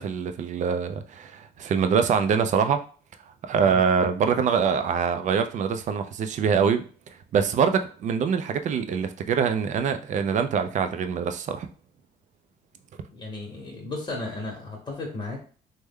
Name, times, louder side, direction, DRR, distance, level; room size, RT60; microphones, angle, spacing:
voice 1, 0.0-2.8 3.4-6.8 7.3-11.7, right 6 dB, 45° right, 0.4 m, -24 dB
voice 2, 13.1-15.4, left 2 dB, 30° left, 1.0 m, -34 dB
3.2 x 2.1 x 3.5 m
cardioid pair, 110°, 17 cm